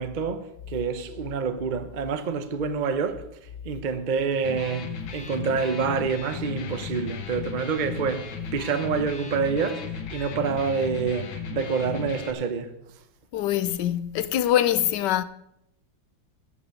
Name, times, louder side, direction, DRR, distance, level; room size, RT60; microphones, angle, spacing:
voice 1, 0.0-3.3 3.6-12.7, right 5 dB, 35° right, 0.7 m, -27 dB
Electric guitar, 4.3-12.3, left 6 dB, 90° left, 1.9 m, -36 dB
voice 2, 13.3-15.2, left 11 dB, 70° left, 1.2 m, -24 dB
12.5 x 6.0 x 8.3 m
omnidirectional pair, 2.1 m